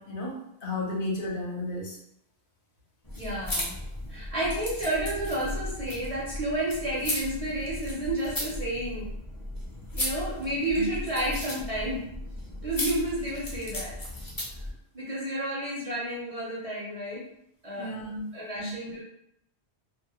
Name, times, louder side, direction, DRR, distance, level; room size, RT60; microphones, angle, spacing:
voice 1, 0.0-2.0 10.8-10.9 17.8-18.3 18.5-18.8, left 1 dB, 60° left, -3 dB, 0.8 m, -33 dB
sound 1, 3.0-14.7, left 1 dB, 30° left, 0.4 m, -35 dB
voice 2, 3.2-3.8 4.1-9.1 9.9-12.0 12.6-14.0 14.9-17.2 17.6-17.9 18.3-19.0, right 1 dB, 45° right, -6 dB, 0.5 m, -31 dB
2.1 x 2.0 x 2.8 m, 0.77 s
omnidirectional pair, 1.1 m